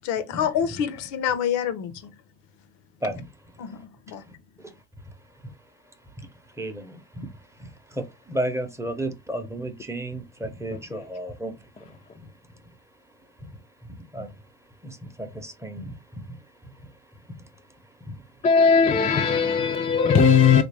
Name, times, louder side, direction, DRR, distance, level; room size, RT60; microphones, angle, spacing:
voice 1, 0.0-2.1 3.6-4.2, left 8 dB, 75° left, 0.7 m, -27 dB
voice 2, 3.0-3.7 4.1-4.7 5.0-18.5, right 1 dB, 10° right, 0.7 m, -36 dB
voice 3, 18.4-20.6, left 6 dB, 20° left, 0.3 m, -18 dB
3.4 x 2.5 x 3.2 m
cardioid pair, 125°, 30 cm